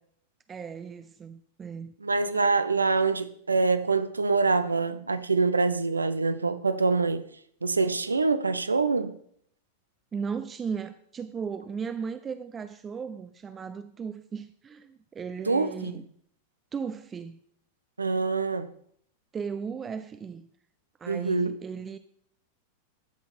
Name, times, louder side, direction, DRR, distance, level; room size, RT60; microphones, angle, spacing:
voice 1, 0.5-1.9 10.1-16.0 16.7-17.4 19.3-20.5 21.0-22.0, right 6 dB, 20° right, 0.4 m, -36 dB
voice 2, 2.0-7.2 7.6-9.2 15.5-15.9 18.0-18.7 21.1-21.5, right 4 dB, 80° right, 0.6 m, -25 dB
13.5 x 5.7 x 4.3 m
figure-of-eight pair, 90°, 0 cm